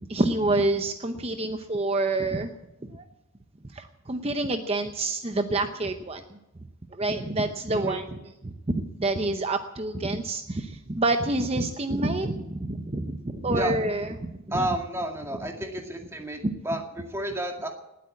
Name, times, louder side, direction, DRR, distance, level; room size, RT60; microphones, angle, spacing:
voice 1, 0.0-2.5 2.9-3.0 3.7-6.4 6.9-8.2 8.4-14.7 16.4-16.5, right 2 dB, 30° right, 7 dB, 0.7 m, -27 dB
voice 2, 7.7-8.0 13.6-13.7 14.5-17.7, right 1 dB, 15° right, 2 dB, 2.1 m, -31 dB
19.0 x 8.5 x 8.4 m, 0.92 s
head